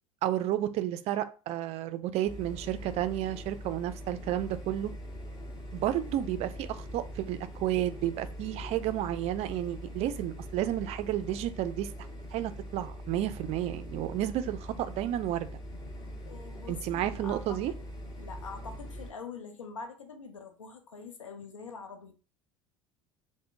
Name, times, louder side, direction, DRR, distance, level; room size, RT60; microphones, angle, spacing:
voice 1, 0.2-4.9 5.7-11.9 12.3-15.6 16.7-17.7, right 12 dB, 40° right, 0.4 m, -31 dB
sound 1, 2.3-19.1, equal, 25° left, 1.5 m, -42 dB
voice 2, 16.2-17.8 18.2-22.1, left 4 dB, 80° left, 0.7 m, -44 dB
3.6 x 2.1 x 3.5 m
figure-of-eight pair, 70°, 17 cm